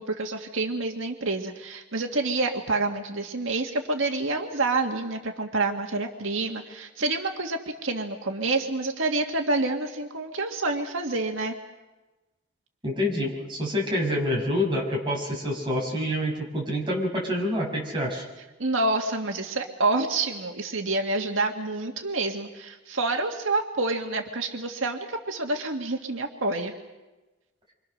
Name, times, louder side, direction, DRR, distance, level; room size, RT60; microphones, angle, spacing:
voice 1, 0.0-11.5 18.6-26.7, right 2 dB, 85° right, 3 dB, 1.8 m, -28 dB
voice 2, 12.8-18.2, left 1 dB, 25° right, -3 dB, 6.0 m, -27 dB
27.5 x 25.0 x 6.5 m, 1.1 s
head